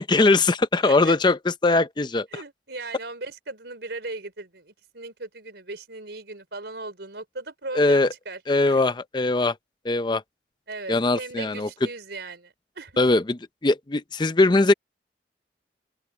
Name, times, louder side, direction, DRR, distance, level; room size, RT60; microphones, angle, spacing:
voice 1, 0.0-2.3 7.8-8.1 8.5-9.5 9.8-10.2 10.9-11.7 13.0-13.4 13.6-14.7, left 2 dB, 25° left, 0.5 m, -20 dB
voice 2, 0.8-1.2 2.3-8.4 8.7-8.8 10.7-13.0, right 3 dB, 70° right, 4.0 m, -38 dB
head